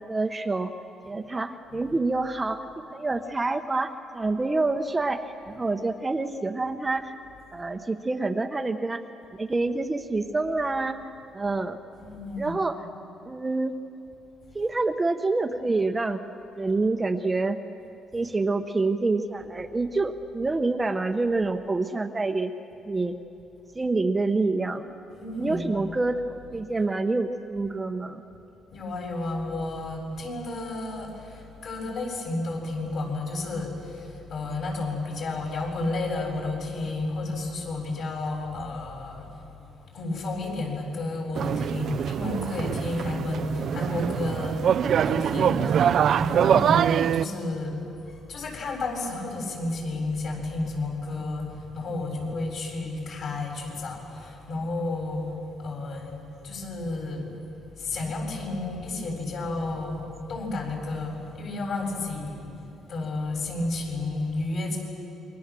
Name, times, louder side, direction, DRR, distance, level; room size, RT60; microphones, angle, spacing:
voice 1, 0.1-0.7 1.1-7.1 7.5-9.0 9.4-11.0 11.3-11.8 12.4-12.8 13.3-13.7 14.5-16.2 16.6-17.6 18.1-22.5 22.9-23.1 23.7-24.9 25.4-28.2, right 3 dB, 15° right, 6 dB, 0.9 m, -27 dB
voice 2, 11.9-12.6 25.1-25.9 28.7-39.6 39.9-44.6 45.0-47.8 48.0-56.2 56.4-57.2 57.8-62.5 62.9-64.8, left 2 dB, 55° left, 0 dB, 7.8 m, -32 dB
sound 1, 41.4-47.3, right 8 dB, 55° right, 0.5 m, -24 dB
28.5 x 24.0 x 7.6 m, 2.9 s
cardioid pair, 135°, 0 cm